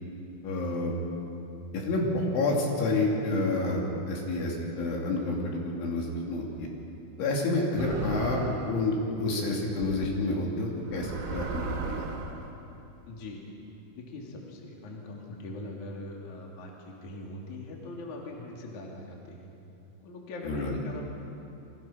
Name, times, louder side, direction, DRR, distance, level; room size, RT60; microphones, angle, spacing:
voice 1, 0.4-0.9 1.7-6.7 7.2-12.0 20.4-20.8, left 2 dB, 75° left, -1 dB, 5.2 m, -29 dB
sound 1, 7.8-8.8 9.8-10.1 10.8-12.4, right 4 dB, 70° right, 4.6 m, -35 dB
voice 2, 13.1-13.4 14.0-19.5 20.0-21.0, left 2 dB, 45° left, -1 dB, 3.8 m, -42 dB
29.0 x 24.0 x 5.8 m, 2.9 s
omnidirectional pair, 5.6 m